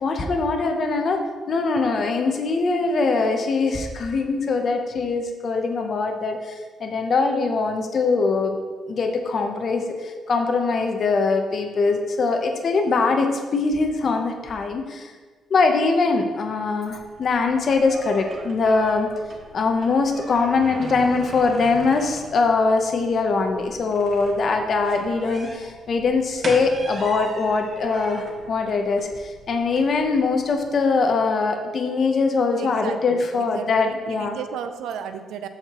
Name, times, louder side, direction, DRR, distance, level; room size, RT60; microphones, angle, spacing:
voice 1, 0.0-6.5 6.8-8.6 8.9-15.1 15.5-19.1 19.5-34.4, left 4 dB, 50° left, 4 dB, 0.8 m, -22 dB
sound 1, 16.9-30.7, right 2 dB, 40° right, 1.4 m, -40 dB
voice 2, 32.6-35.5, right 8 dB, 85° right, 9 dB, 0.4 m, -34 dB
13.0 x 4.6 x 3.0 m, 1.4 s
cardioid pair, 90°, 0 cm